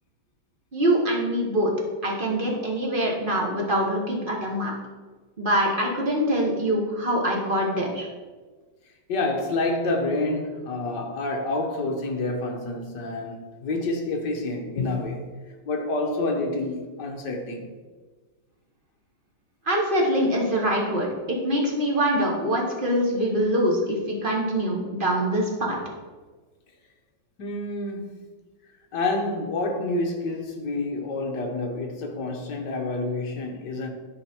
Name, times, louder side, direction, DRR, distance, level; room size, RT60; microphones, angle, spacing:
voice 1, 0.7-1.7 2.0-4.7 5.4-8.1 19.6-25.8, equal, 30° right, 1.3 m, -24 dB
voice 2, 9.1-15.3 15.6-17.7 27.4-28.2 28.9-33.9, left 2 dB, 60° left, 1.6 m, -28 dB
11.0 x 4.9 x 4.5 m
omnidirectional pair, 2.2 m